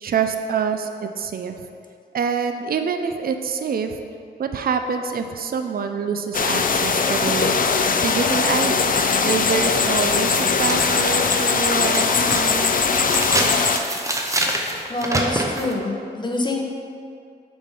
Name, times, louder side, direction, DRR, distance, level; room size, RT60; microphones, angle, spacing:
voice 1, 0.0-1.5 2.1-3.9 4.4-7.6 8.0-8.9 9.2-12.7, right 6 dB, 55° right, 6 dB, 0.4 m, -26 dB
sound 1, 6.3-13.8, left 5 dB, 50° left, 0.4 m, -20 dB
sound 2, 9.7-9.8 10.3-15.7, right 1 dB, 15° right, 0.7 m, -26 dB
voice 2, 14.9-16.6, left 2 dB, 25° left, 0 dB, 0.9 m, -25 dB
6.7 x 4.2 x 4.9 m, 2.3 s
wide cardioid pair, 100°, 18 cm